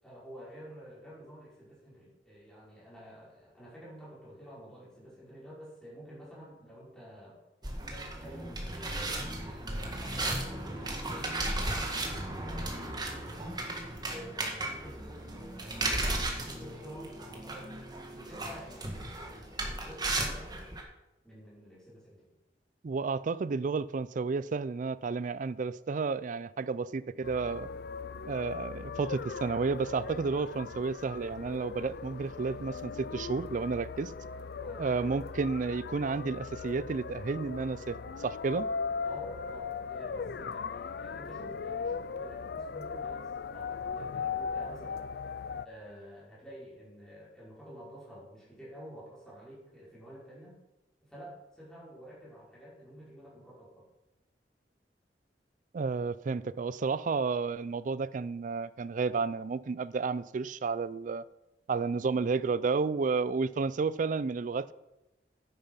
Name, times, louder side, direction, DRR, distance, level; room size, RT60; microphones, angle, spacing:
voice 1, 0.0-7.4 7.8-9.2 9.7-13.4 14.0-16.1 16.4-17.7 18.1-20.7 21.2-22.3 34.6-34.9 39.0-45.1 45.6-50.6 51.0-53.9, equal, 5° left, 5.5 m, -49 dB
sound 1, 7.6-20.8, right 2 dB, 25° right, 2.1 m, -35 dB
voice 2, 22.8-27.7 28.3-34.1 34.8-38.7 55.7-61.2 61.7-64.7, right 4 dB, 45° right, 0.4 m, -31 dB
sound 2, 27.2-45.6, left 5 dB, 65° left, 0.4 m, -38 dB
10.5 x 9.6 x 5.6 m
head